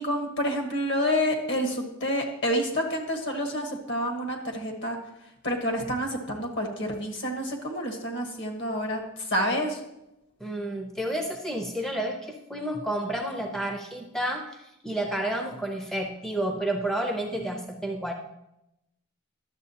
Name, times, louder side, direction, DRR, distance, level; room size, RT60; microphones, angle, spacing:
voice 1, 0.0-5.0 5.4-9.8 17.5-17.6, equal, 60° left, 3 dB, 1.3 m, -28 dB
voice 2, 10.4-18.1, right 1 dB, ahead, 2 dB, 0.5 m, -30 dB
11.0 x 7.0 x 2.8 m, 0.88 s
head